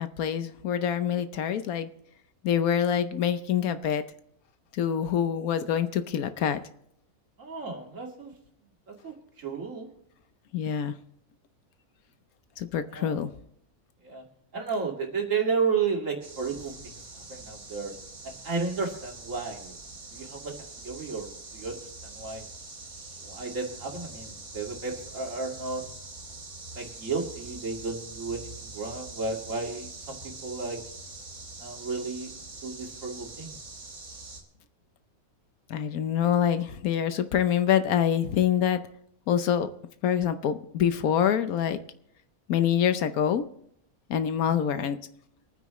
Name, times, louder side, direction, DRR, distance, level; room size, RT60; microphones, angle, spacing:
voice 1, 0.0-1.9 2.4-4.0 4.7-6.6 10.5-10.9 12.6-13.3 35.7-38.8 39.3-39.7 40.0-41.8 42.5-43.5 44.1-45.0, left 9 dB, 80° left, 11 dB, 1.3 m, -25 dB
voice 2, 7.4-8.3 8.9-9.9 12.9-13.2 14.0-14.2 14.5-17.9 18.4-19.8 20.1-22.4 23.2-25.8 26.7-30.8 31.6-32.3 32.6-33.6 44.4-44.8, right 4 dB, 60° right, 0 dB, 2.6 m, -33 dB
sound 1, 16.2-34.4, right 3 dB, 80° right, 2.7 m, -44 dB
24.5 x 9.5 x 3.1 m, 0.74 s
omnidirectional pair, 1.5 m